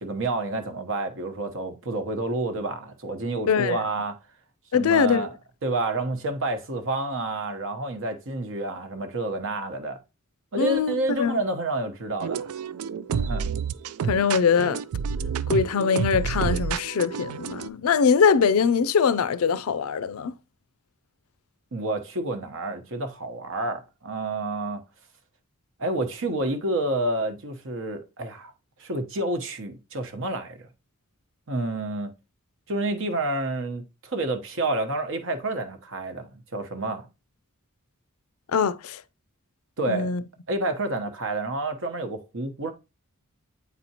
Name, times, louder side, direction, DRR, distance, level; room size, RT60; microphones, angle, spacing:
voice 1, 0.0-4.2 4.7-5.3 5.6-10.0 10.5-12.5 13.2-13.5 21.7-24.8 25.8-28.5 28.8-30.7 31.5-32.1 32.7-37.1 39.8-40.1 40.5-42.7, right 2 dB, 60° right, 1.0 m, -29 dB
voice 2, 3.5-3.8 4.7-5.3 10.6-11.4 14.1-14.8 15.5-20.3 38.5-39.0 39.9-40.2, left 6 dB, 75° left, 0.4 m, -22 dB
sound 1, 12.2-17.7, right 6 dB, 80° right, 0.4 m, -29 dB
8.3 x 4.2 x 2.8 m
head